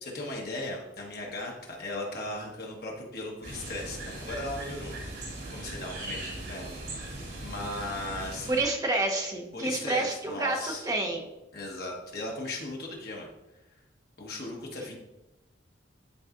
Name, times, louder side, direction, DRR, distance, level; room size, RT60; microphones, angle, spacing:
voice 1, 0.0-6.7 7.4-8.5 9.5-10.8 11.5-13.3 14.2-15.0, left 2 dB, 55° left, -1 dB, 1.4 m, -37 dB
sound 1, 3.4-8.6, right 1 dB, 90° right, 2.4 m, -39 dB
voice 2, 8.5-11.2, right 2 dB, 20° right, 1 dB, 0.9 m, -29 dB
11.0 x 4.0 x 2.5 m, 0.98 s
head